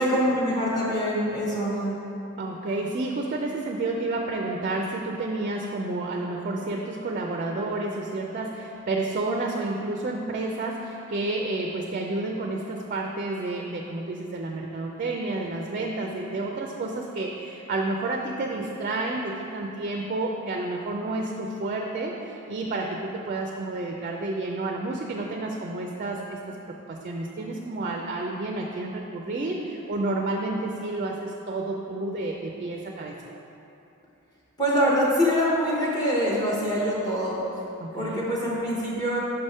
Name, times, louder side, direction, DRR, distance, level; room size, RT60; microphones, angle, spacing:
voice 1, 0.0-2.0 34.6-37.4 37.9-39.2, equal, 20° left, -6 dB, 0.7 m, -24 dB
voice 2, 2.4-33.2 37.8-38.2, right 2 dB, 40° right, 1 dB, 0.4 m, -30 dB
5.7 x 3.5 x 5.3 m, 2.8 s
head